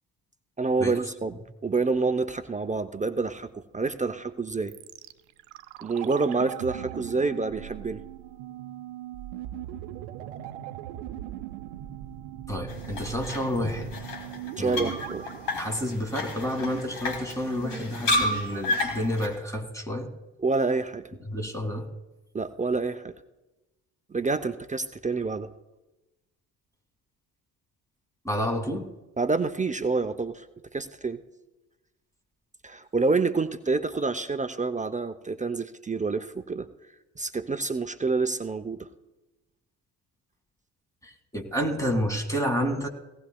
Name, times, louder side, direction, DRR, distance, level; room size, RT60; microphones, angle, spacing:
voice 1, 0.6-4.7 5.8-8.0 14.6-15.3 20.4-21.1 22.3-23.1 24.1-25.5 29.2-30.5 30.7-31.2 32.6-36.7 37.2-38.9, right 4 dB, 15° right, 10 dB, 0.6 m, -28 dB
sound 1, 4.7-16.7 16.9-17.0, right 12 dB, 70° right, 0.7 m, -40 dB
voice 2, 12.5-13.9 14.6-15.0 15.6-20.1 21.3-21.9 28.2-28.9 41.0-42.9, equal, 5° left, 5 dB, 2.1 m, -29 dB
sound 2, 12.7-19.3, left 2 dB, 70° left, 2.7 m, -32 dB
18.0 x 16.5 x 2.3 m, 1.0 s
hypercardioid pair, 50°, 45 cm